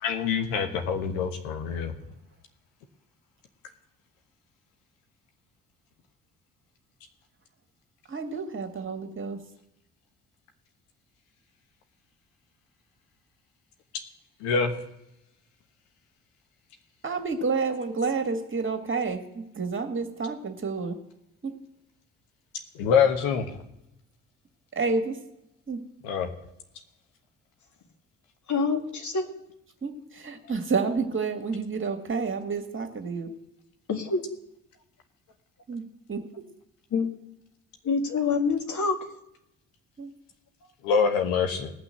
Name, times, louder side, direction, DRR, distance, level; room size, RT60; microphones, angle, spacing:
voice 1, 0.0-1.9 14.4-14.7 22.8-23.5 26.0-26.3 40.8-41.7, left 6 dB, 70° left, 6 dB, 1.3 m, -25 dB
voice 2, 8.1-9.4 17.0-21.0 21.4-21.6 24.7-25.2 25.7-25.8 29.8-33.3 35.7-36.4 40.0-40.1, right 4 dB, 30° right, 6 dB, 2.1 m, -30 dB
voice 3, 28.5-29.3 33.9-34.2 36.9-37.1 37.8-39.0, left 4 dB, 45° left, 5 dB, 1.8 m, -26 dB
18.0 x 6.1 x 8.0 m, 0.84 s
hypercardioid pair, 45°, 42 cm